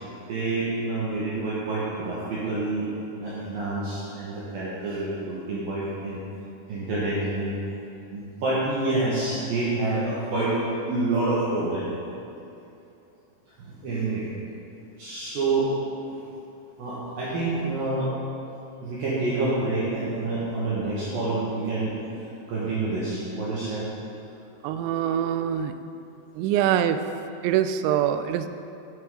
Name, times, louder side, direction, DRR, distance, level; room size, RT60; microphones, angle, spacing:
voice 1, 0.3-6.2 6.7-7.6 8.1-10.6 10.9-11.9 13.6-14.2 15.0-15.7 16.8-18.1 18.8-23.8, right 2 dB, 60° right, -9 dB, 2.8 m, -28 dB
voice 2, 24.6-25.7 26.4-27.0 27.4-28.5, right 10 dB, 85° right, 9 dB, 2.8 m, -24 dB
11.5 x 9.6 x 3.8 m, 2.8 s
omnidirectional pair, 5.4 m